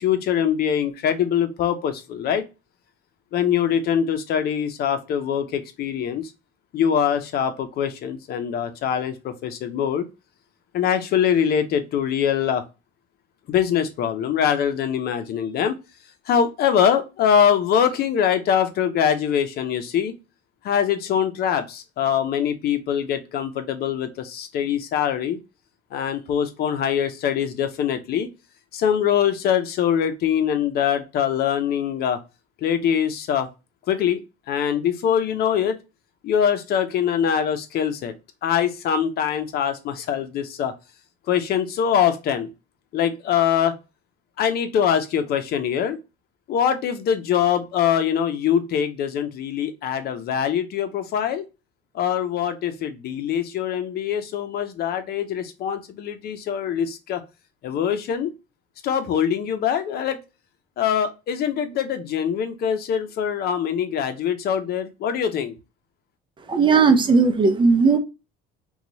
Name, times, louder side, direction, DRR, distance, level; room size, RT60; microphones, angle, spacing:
voice 1, 0.0-2.4 3.3-6.3 6.7-10.1 10.7-12.6 13.5-15.7 16.3-20.1 20.6-25.4 25.9-28.3 28.7-32.2 32.6-33.5 33.9-34.2 34.5-35.8 36.2-38.1 38.4-40.7 41.3-42.5 42.9-43.7 44.4-46.0 46.5-51.4 51.9-57.2 57.6-58.3 58.8-60.2 60.8-65.5, left 8 dB, 55° left, 8 dB, 0.7 m, -23 dB
voice 2, 66.5-68.0, right 4 dB, 25° right, 7 dB, 0.6 m, -16 dB
2.9 x 2.3 x 3.9 m, 0.28 s
supercardioid pair, 100°, 19 cm